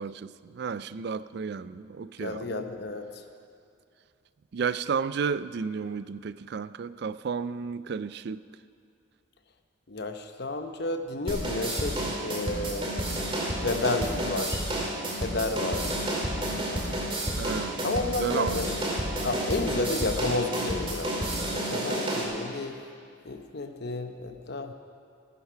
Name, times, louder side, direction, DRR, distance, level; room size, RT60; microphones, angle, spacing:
voice 1, 0.0-2.6 4.5-8.4 17.4-17.8 18.1-18.7, right 6 dB, 55° right, 15 dB, 0.3 m, -32 dB
voice 2, 2.2-3.2 9.9-12.9 13.5-14.7 15.1-16.0 17.8-18.9 19.2-22.8 23.2-24.7, left 2 dB, 55° left, 7 dB, 0.9 m, -31 dB
sound 1, 11.3-22.2, right 1 dB, 25° right, 2.1 m, -30 dB
15.5 x 10.5 x 5.7 m, 2.5 s
head